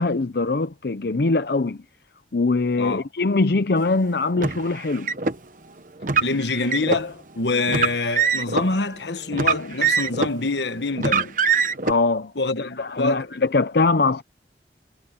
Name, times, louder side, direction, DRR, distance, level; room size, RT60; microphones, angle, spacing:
voice 1, 0.0-1.8 2.3-5.1 11.9-12.3 12.6-14.2, left 3 dB, 60° left, 0.6 m, -22 dB
Car, 4.4-5.4 6.0-7.0 7.7-8.7 9.3-10.4 11.0-11.9, right 5 dB, 45° right, 1.1 m, -22 dB
voice 2, 6.2-11.4 12.4-13.4, left 3 dB, 80° left, 1.3 m, -25 dB
head